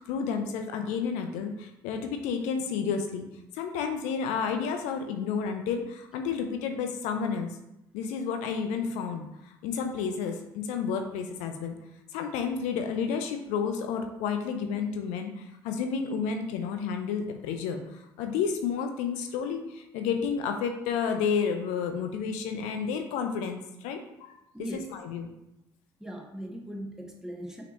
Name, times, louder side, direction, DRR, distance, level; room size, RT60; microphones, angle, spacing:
voice 1, 0.0-3.3 3.5-7.6 7.9-11.7 12.1-24.3 24.7-25.3, left 6 dB, 70° left, 5 dB, 0.5 m, -31 dB
voice 2, 24.5-24.9 26.0-27.6, equal, 5° right, 0 dB, 1.1 m, -38 dB
5.8 x 2.9 x 3.1 m, 0.87 s
hypercardioid pair, 50°, 13 cm